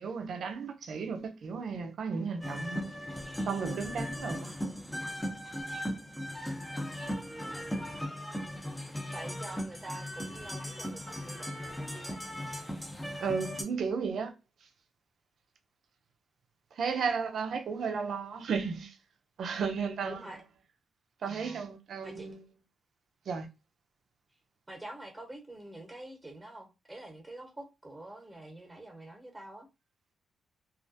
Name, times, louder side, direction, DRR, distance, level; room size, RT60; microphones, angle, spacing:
voice 1, 0.0-2.8 3.5-4.5 13.2-14.3 16.8-18.9 19.4-20.2 21.2-22.4 23.3-23.5, right 5 dB, 70° right, 0.4 m, -34 dB
sound 1, 2.4-13.6, equal, 10° left, 0.7 m, -38 dB
voice 2, 9.1-12.3 20.0-20.4 21.2-21.6 22.0-22.3 24.7-29.7, right 1 dB, 15° right, 1.0 m, -46 dB
2.4 x 2.1 x 2.6 m
cardioid pair, 60°, 0 cm